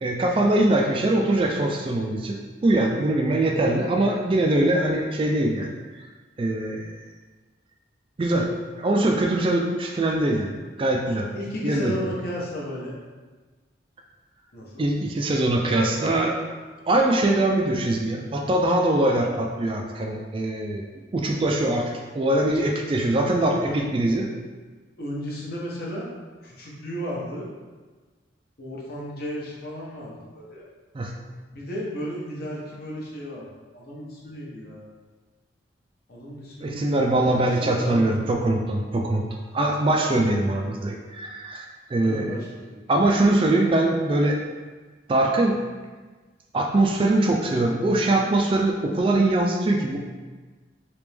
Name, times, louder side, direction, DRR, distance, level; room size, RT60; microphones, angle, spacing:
voice 1, 0.0-5.7 6.4-7.0 8.2-8.5 8.8-10.5 10.8-11.3 11.6-11.9 14.8-16.4 16.9-20.8 21.1-24.3 30.9-31.1 36.6-39.3 39.5-42.4 42.9-44.4 45.1-45.6 46.5-50.0, right 1 dB, 30° right, 2 dB, 0.3 m, -22 dB
voice 2, 11.3-13.0 14.5-14.8 23.6-23.8 25.0-26.1 26.4-27.5 28.6-30.7 31.5-33.5 33.7-34.9 36.1-38.2 42.0-43.0, equal, 55° left, -4 dB, 0.9 m, -34 dB
3.3 x 2.9 x 3.3 m, 1.3 s
head